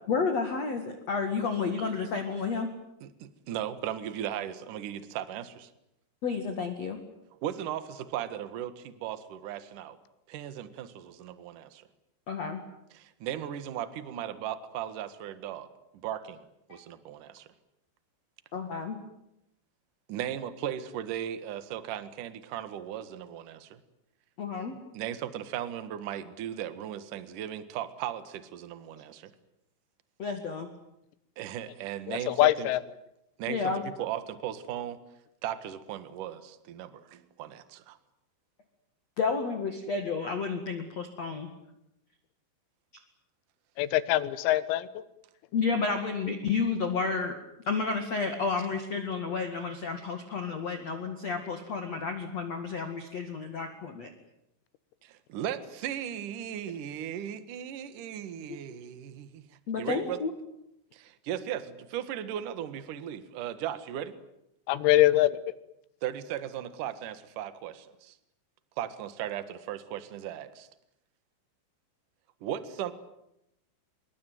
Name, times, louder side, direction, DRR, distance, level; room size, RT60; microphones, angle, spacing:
voice 1, 0.1-2.7 6.2-7.0 12.3-12.6 16.7-16.8 18.5-19.0 24.4-24.7 30.2-30.7 33.5-33.8 39.2-41.5 45.5-47.4 47.7-54.1 58.5-58.6 59.7-60.3, left 5 dB, 50° left, 6 dB, 2.2 m, -31 dB
voice 2, 3.0-5.7 7.4-10.0 10.3-11.9 12.9-15.7 16.0-16.4 16.7-17.5 20.1-23.8 24.9-29.3 31.4-32.7 33.4-35.0 35.4-38.0 55.0-59.4 59.8-60.2 60.9-64.1 66.0-68.2 68.8-70.7 72.4-72.9, right 10 dB, 60° right, 12 dB, 2.3 m, -37 dB
voice 3, 32.1-32.8 43.8-44.9 64.7-65.3, left 15 dB, 85° left, 16 dB, 3.9 m, -23 dB
25.5 x 23.0 x 9.3 m, 0.82 s
omnidirectional pair, 6.0 m